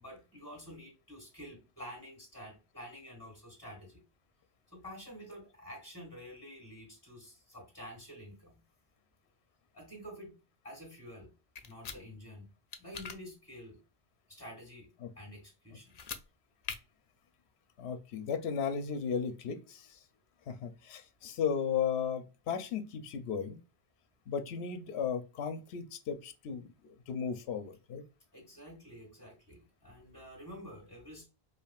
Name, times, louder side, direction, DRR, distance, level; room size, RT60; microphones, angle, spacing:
voice 1, 0.0-4.0 4.7-8.6 9.7-10.3 10.6-11.3 11.6-12.5 12.8-13.8 14.3-14.9 15.2-16.0 28.3-31.3, equal, 15° left, 1.9 m, -49 dB
sound 1, 11.6-12.0 12.7-13.2 15.9-16.2 16.6-16.8, left 6 dB, 50° left, 0.5 m, -41 dB
voice 2, 17.8-20.0 20.5-23.6 24.3-28.0, left 7 dB, 85° left, 0.9 m, -35 dB
4.9 x 2.5 x 2.3 m
omnidirectional pair, 1.1 m